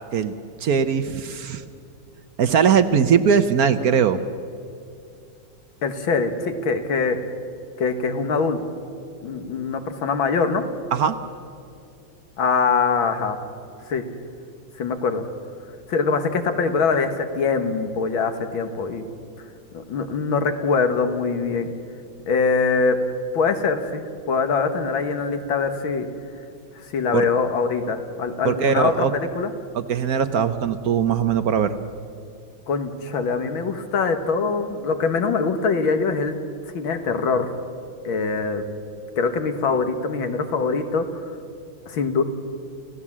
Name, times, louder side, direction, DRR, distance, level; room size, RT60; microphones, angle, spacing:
voice 1, 0.6-1.6 2.4-4.2 10.9-11.2 27.1-27.3 28.4-29.1 29.7-31.8, right 7 dB, 60° right, 11 dB, 1.0 m, -20 dB
voice 2, 5.8-7.2 7.8-8.6 9.2-10.6 12.4-13.4 13.9-14.0 14.8-15.2 15.9-19.1 19.7-21.7 22.3-23.0 23.3-26.1 26.8-29.1 29.4-29.5 32.7-36.3 36.7-37.5 38.0-38.6 39.2-41.3 41.9-42.2, left 4 dB, 70° left, 7 dB, 2.3 m, -23 dB
29.0 x 16.5 x 7.4 m, 2.4 s
omnidirectional pair, 2.3 m